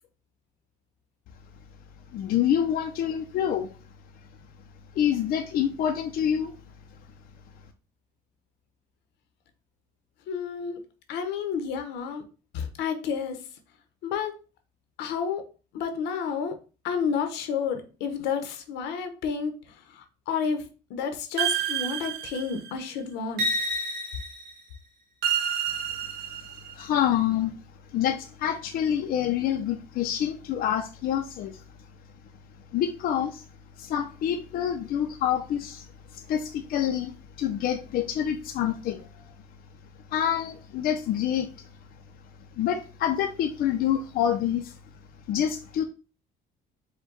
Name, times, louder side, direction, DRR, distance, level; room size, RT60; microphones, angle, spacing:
voice 1, 2.1-3.7 4.9-6.5 26.7-27.6 27.9-31.6 32.7-33.4 33.8-39.3 40.1-41.7 42.6-44.8 45.3-45.8, left 10 dB, 65° left, 5 dB, 0.5 m, -27 dB
voice 2, 10.3-10.8 11.1-12.2 12.5-13.4 14.0-14.3 15.0-15.4 15.7-16.5 16.8-19.5 19.9-23.4, left 6 dB, 85° left, 7 dB, 0.8 m, -30 dB
sound 1, 21.4-22.7 23.4-24.5 25.2-26.7, right 5 dB, 70° right, 1.0 m, -29 dB
5.0 x 2.2 x 3.8 m, 0.34 s
cardioid pair, 110°, 17 cm